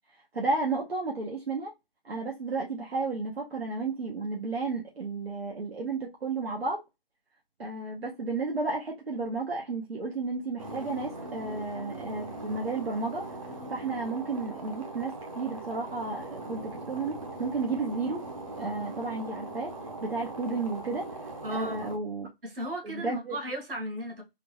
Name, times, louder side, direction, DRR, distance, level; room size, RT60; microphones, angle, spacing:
voice 1, 0.3-1.7 2.0-6.8 7.6-13.2 13.7-18.2 18.5-19.7 20.0-21.0 21.5-22.3 22.8-23.4, right 3 dB, 85° right, 1.0 m, -32 dB
sound 1, 10.6-22.0, right 2 dB, 35° right, 0.7 m, -40 dB
voice 2, 21.4-21.9 22.4-24.2, right 1 dB, 70° right, 1.6 m, -35 dB
3.7 x 2.3 x 3.0 m
figure-of-eight pair, 165°, 29 cm